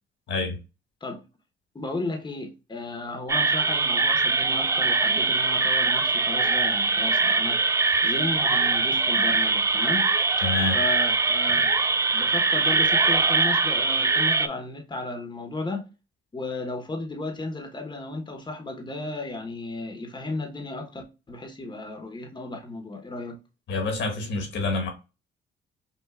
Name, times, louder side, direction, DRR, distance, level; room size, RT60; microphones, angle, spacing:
voice 1, 0.3-0.6 10.4-10.8 23.7-24.9, left 3 dB, 70° left, 1.8 m, -27 dB
voice 2, 1.7-7.6 8.0-10.1 10.7-11.7 12.1-15.8 16.3-23.4, left 2 dB, 20° left, 1.1 m, -34 dB
sound 1, 3.3-14.5, right 4 dB, 15° right, 0.3 m, -22 dB
5.7 x 2.5 x 2.4 m
cardioid pair, 90°, 20 cm